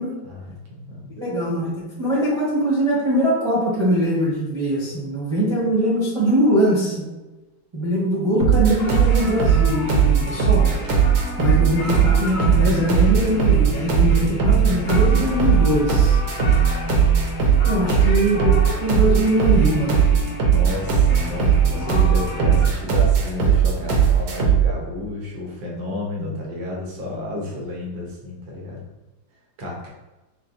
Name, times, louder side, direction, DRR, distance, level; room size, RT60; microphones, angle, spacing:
voice 1, 0.2-1.1 17.6-18.6 20.4-28.8 29.6-29.9, left 2 dB, 90° right, -3 dB, 1.7 m, -32 dB
voice 2, 1.1-7.0 7.7-10.7 11.4-16.2 17.6-20.0 26.2-26.3, right 1 dB, 20° right, -7 dB, 0.8 m, -22 dB
sound 1, 8.4-24.7, right 7 dB, 60° right, 1.1 m, -18 dB
sound 2, 8.8-22.7, left 3 dB, 90° left, 1.8 m, -30 dB
6.6 x 2.2 x 2.5 m, 1.1 s
omnidirectional pair, 2.0 m